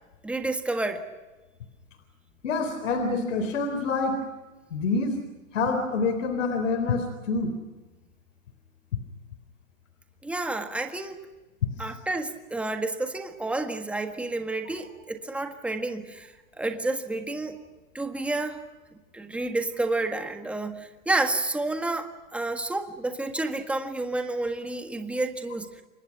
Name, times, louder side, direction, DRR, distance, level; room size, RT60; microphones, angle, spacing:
voice 1, 0.2-1.1 10.2-11.3 11.8-17.6 17.9-18.6 19.1-25.7, right 2 dB, 5° right, 6 dB, 1.6 m, -30 dB
voice 2, 2.4-4.2 4.7-5.1 5.5-7.5, left 3 dB, 70° left, 8 dB, 4.0 m, -26 dB
29.5 x 25.0 x 6.0 m, 1.2 s
hypercardioid pair, 145°, 39 cm